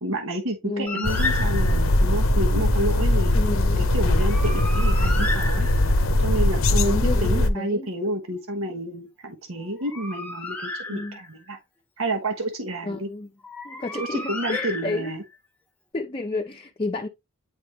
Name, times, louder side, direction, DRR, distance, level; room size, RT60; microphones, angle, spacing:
voice 1, 0.0-3.4 3.8-5.7 6.2-11.6 12.0-13.1 14.0-15.2, right 1 dB, 85° right, 1.3 m, -30 dB
voice 2, 0.6-1.1 3.3-3.9 6.7-7.9 10.9-11.2 12.8-13.3 13.6-15.1 15.9-17.1, left 2 dB, 25° left, 0.6 m, -31 dB
Bird, 0.9-2.0 4.1-6.2 9.6-11.5 13.4-15.3, left 2 dB, 10° left, 0.9 m, -33 dB
sound 1, 1.0-7.5, left 1 dB, 80° left, 0.7 m, -21 dB
9.5 x 3.5 x 3.0 m
head